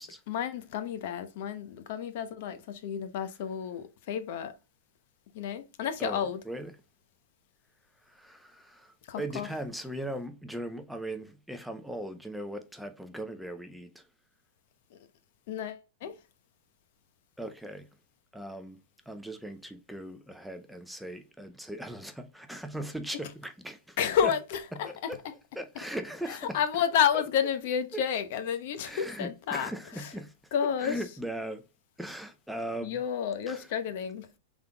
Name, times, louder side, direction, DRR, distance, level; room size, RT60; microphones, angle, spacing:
voice 1, 0.3-4.5 5.3-6.4 9.1-9.5 15.5-16.1 24.0-25.1 26.3-29.7 30.0-30.1 30.5-31.0 32.8-34.3, left 8 dB, 60° left, 0.8 m, -30 dB
voice 2, 6.0-6.7 8.1-14.1 17.4-17.9 18.3-18.8 19.1-24.0 24.2-24.3 24.7-25.2 25.5-26.6 27.1-27.2 27.9-28.0 28.8-30.3 30.8-31.6 32.0-33.0 33.5-33.7, right 1 dB, ahead, 0.5 m, -39 dB
5.5 x 3.5 x 2.3 m
supercardioid pair, 145°, 0 cm